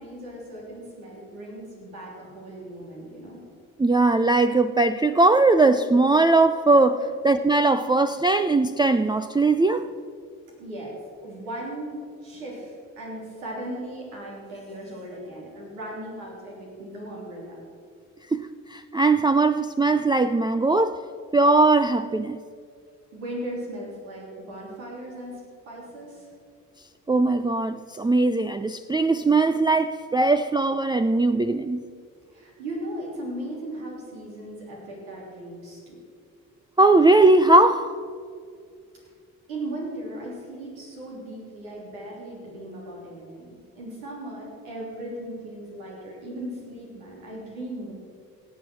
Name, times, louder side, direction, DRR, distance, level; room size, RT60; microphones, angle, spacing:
voice 1, 0.0-3.4 7.0-7.1 10.6-11.0 11.2-17.6 23.1-25.4 25.6-26.3 32.3-36.0 39.0-39.1 39.5-47.9, right 1 dB, 90° right, -4 dB, 3.3 m, -37 dB
voice 2, 3.8-9.9 18.3-21.0 21.3-22.4 27.1-31.8 36.8-37.9, right 2 dB, 10° right, 9 dB, 0.5 m, -20 dB
17.5 x 7.8 x 6.1 m, 2.2 s
hypercardioid pair, 45°, 41 cm